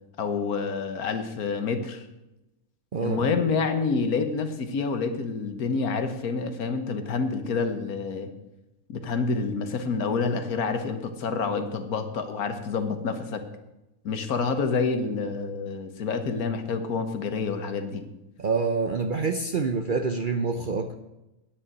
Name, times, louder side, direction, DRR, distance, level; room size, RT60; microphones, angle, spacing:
voice 1, 0.2-2.1 3.0-8.3 8.9-13.4 14.0-18.0, left 4 dB, 75° left, 8 dB, 1.6 m, -28 dB
voice 2, 2.9-3.3 18.4-21.0, right 4 dB, 50° right, 7 dB, 0.6 m, -27 dB
9.5 x 6.9 x 9.0 m, 0.96 s
omnidirectional pair, 1.6 m